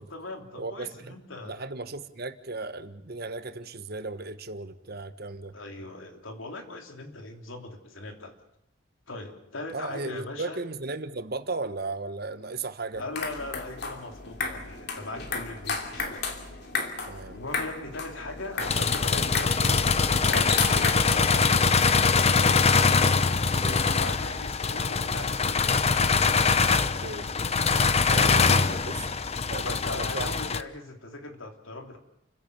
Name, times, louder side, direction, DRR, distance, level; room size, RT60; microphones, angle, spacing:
voice 1, 0.0-1.7 5.5-8.4 9.1-10.7 13.0-16.2 17.3-22.8 23.1-23.4 23.9-25.6 28.0-28.6 29.6-32.0, left 2 dB, 85° left, 4 dB, 3.4 m, -40 dB
voice 2, 0.6-1.1 1.4-5.5 9.7-13.0 17.1-17.4 23.6-23.8 27.0-27.3 28.1-28.9 29.5-30.3, right 3 dB, 50° right, 10 dB, 1.4 m, -36 dB
sound 1, 12.9-22.4, left 4 dB, 55° left, 2.8 m, -34 dB
sound 2, 18.6-30.6, left 4 dB, 30° left, 0.8 m, -23 dB
29.5 x 16.0 x 6.9 m, 0.88 s
head